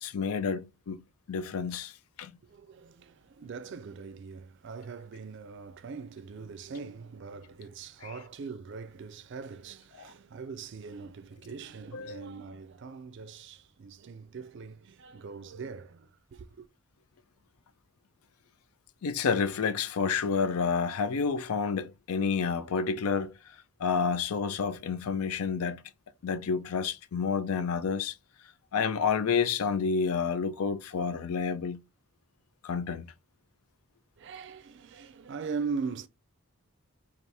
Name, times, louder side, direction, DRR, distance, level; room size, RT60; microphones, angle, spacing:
voice 1, 0.0-1.9 2.2-2.3 8.0-8.1 10.0-10.1 11.9-12.3 19.0-23.3 23.8-25.8 26.2-28.1 28.7-31.8 32.6-33.1, left 5 dB, 80° left, 0.4 m, -29 dB
voice 2, 2.4-16.7 34.2-36.1, right 5 dB, 55° right, 0.4 m, -41 dB
3.3 x 2.5 x 4.2 m
head